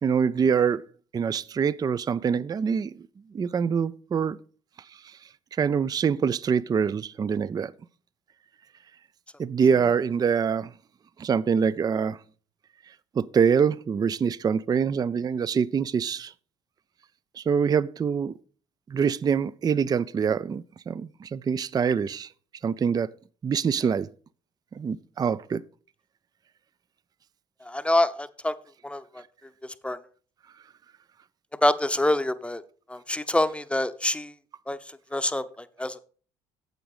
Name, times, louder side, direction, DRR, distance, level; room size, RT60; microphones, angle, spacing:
voice 1, 0.0-0.8 1.1-2.9 3.3-4.4 5.0-5.2 5.6-7.7 9.4-10.7 11.2-12.2 13.1-16.3 17.4-18.3 18.9-22.3 22.6-23.1 23.4-24.1 24.8-25.6, right 6 dB, 25° right, 0.4 m, -25 dB
voice 2, 27.6-28.5 28.8-29.2 29.6-30.0 31.6-32.6 32.9-34.3 34.7-34.8 35.1-36.0, left 1 dB, 5° left, 0.8 m, -26 dB
9.0 x 7.8 x 4.9 m
hypercardioid pair, 60°, 15 cm